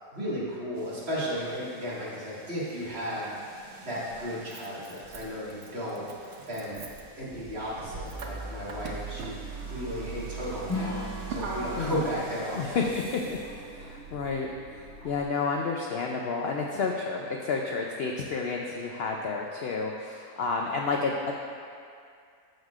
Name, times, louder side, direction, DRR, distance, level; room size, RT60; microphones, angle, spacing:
voice 1, 0.1-3.3 3.8-6.8 7.2-9.4 9.7-12.8, equal, 40° right, -9 dB, 2.1 m, -34 dB
sound 1, 0.7-14.0, right 3 dB, 75° right, 1.3 m, -52 dB
Motor vehicle (road), 2.8-2.9 4.1-15.2, right 4 dB, 55° right, 0.9 m, -40 dB
Acoustic guitar / Strum, 10.7-13.9, left 2 dB, 20° left, 0.4 m, -38 dB
voice 2, 12.5-13.4 13.7-14.5 15.0-21.3, left 4 dB, 70° left, 0 dB, 0.5 m, -30 dB
12.5 x 6.4 x 2.4 m, 2.3 s
omnidirectional pair, 1.6 m